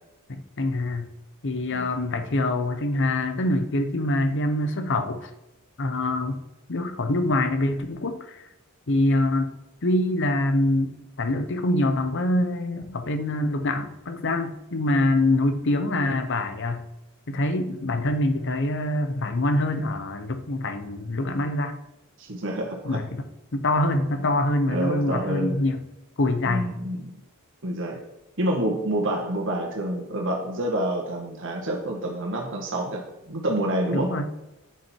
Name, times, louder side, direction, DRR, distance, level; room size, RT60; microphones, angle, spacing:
voice 1, 0.3-1.1 1.4-5.3 5.8-6.4 6.7-8.4 8.9-9.5 9.8-16.9 17.3-21.8 22.8-25.8 26.2-26.7 33.9-34.3, left 1 dB, 60° left, 9 dB, 0.9 m, -25 dB
voice 2, 22.2-23.0 24.7-25.5 26.4-27.2 27.6-28.0 28.4-34.1, right 1 dB, 60° right, 0 dB, 1.8 m, -28 dB
9.1 x 7.7 x 4.6 m, 0.97 s
head